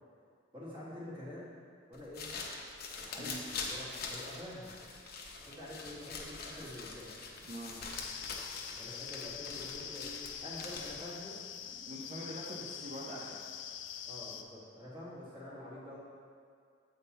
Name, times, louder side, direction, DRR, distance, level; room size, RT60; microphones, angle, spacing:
voice 1, 0.5-1.5 1.9-2.3 3.0-4.7 5.4-7.2 8.7-11.4 14.1-16.0, left 1 dB, 30° right, -7 dB, 1.6 m, -47 dB
sound 1, 1.9-11.2, left 4 dB, 55° left, 0.7 m, -44 dB
voice 2, 7.4-7.8 10.6-10.7 11.7-13.4, right 1 dB, 45° right, -5 dB, 0.6 m, -44 dB
sound 2, 8.0-14.4, left 8 dB, 85° left, 0.4 m, -44 dB
8.2 x 3.7 x 4.1 m, 2.1 s
head